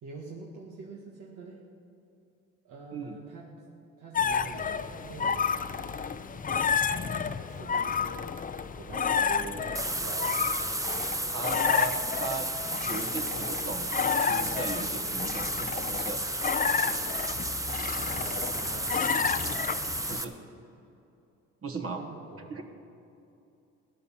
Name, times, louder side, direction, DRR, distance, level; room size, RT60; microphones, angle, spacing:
voice 1, 0.0-1.6 2.6-3.6 4.0-6.4 6.9-8.3 8.7-10.4 11.4-12.0 18.2-19.1 22.0-22.7, right 3 dB, 80° right, -3 dB, 1.8 m, -45 dB
sound 1, 4.1-20.2, left 6 dB, 30° left, 0.5 m, -31 dB
sound 2, 9.7-20.2, right 2 dB, 10° right, 0.9 m, -33 dB
voice 2, 11.3-12.5 12.9-16.2 20.1-20.3 21.6-22.0 22.5-22.7, right 4 dB, 50° right, 3 dB, 1.7 m, -37 dB
16.0 x 10.5 x 7.4 m, 2.7 s
cardioid pair, 90°, 30 cm